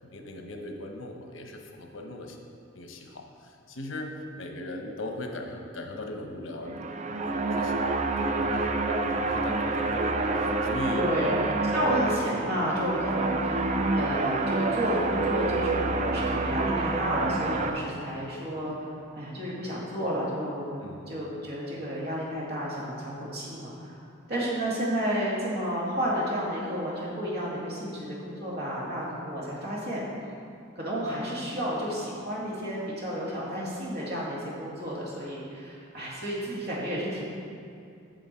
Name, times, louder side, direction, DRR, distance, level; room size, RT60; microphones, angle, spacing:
voice 1, 0.0-2.4 2.7-7.8 8.2-11.6 20.8-21.1, left 1 dB, 85° left, 3 dB, 0.9 m, -39 dB
sound 1, 6.6-17.7, right 3 dB, 40° right, 0.5 m, -27 dB
voice 2, 10.9-24.0 24.3-30.0 30.8-37.2, equal, 55° right, -6 dB, 2.1 m, -31 dB
7.8 x 7.0 x 4.4 m, 2.5 s
head